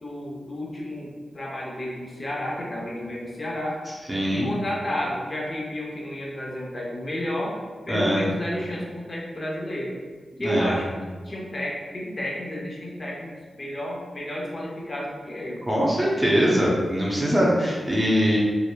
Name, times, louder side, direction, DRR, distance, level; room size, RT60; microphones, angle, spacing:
voice 1, 0.0-3.8 4.3-7.6 7.9-10.0 10.4-15.6, left 1 dB, 45° left, -3 dB, 0.7 m, -31 dB
voice 2, 4.1-4.5 7.9-8.2 10.4-10.7 15.7-18.4, equal, 20° right, -5 dB, 0.6 m, -22 dB
2.9 x 2.0 x 2.2 m, 1.5 s
cardioid pair, 50°, 0 cm